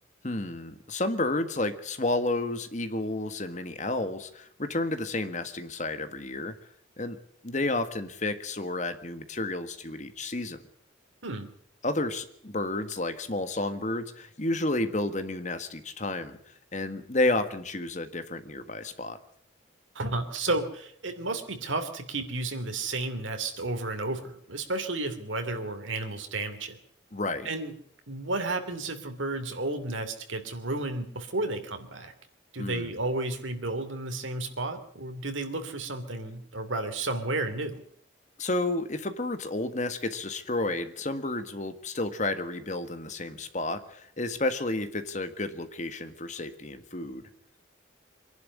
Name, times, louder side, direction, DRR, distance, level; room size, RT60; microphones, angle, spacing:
voice 1, 0.2-6.5 7.0-7.2 7.4-10.6 11.8-16.4 16.7-19.2 27.1-27.5 32.6-32.9 38.4-47.2, left 2 dB, 40° left, 10 dB, 1.6 m, -31 dB
voice 2, 19.9-26.8 27.4-27.7 28.1-32.1 32.5-37.8, right 2 dB, 90° right, 7 dB, 2.9 m, -32 dB
23.5 x 11.0 x 9.7 m, 0.65 s
head